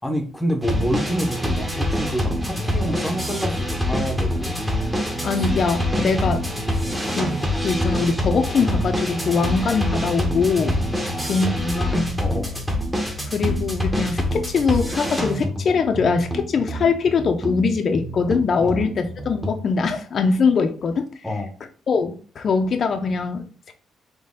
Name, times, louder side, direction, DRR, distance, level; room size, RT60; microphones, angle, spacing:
voice 1, 0.0-4.6 5.4-5.5 6.0-6.2 11.0-11.5 12.2-12.6 18.6-18.8 21.2-21.5, equal, 10° left, 4 dB, 0.9 m, -28 dB
sound 1, 0.6-19.6, equal, 10° right, 1.1 m, -25 dB
voice 2, 5.2-6.4 7.1-10.9 11.2-12.2 13.2-21.1 21.9-23.7, left 5 dB, 50° left, 6 dB, 0.6 m, -22 dB
4.1 x 3.0 x 3.6 m, 0.40 s
cardioid pair, 90°, 0 cm